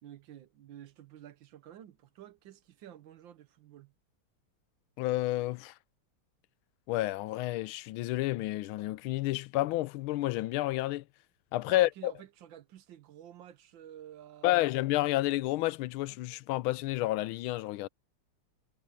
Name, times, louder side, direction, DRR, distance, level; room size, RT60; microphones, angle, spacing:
voice 1, 0.0-3.9 11.7-14.7, right 11 dB, 70° right, 1.6 m, -51 dB
voice 2, 5.0-5.7 6.9-11.0 11.5-12.1 14.4-17.9, left 17 dB, 85° left, 1.4 m, -30 dB
omnidirectional pair, 2.2 m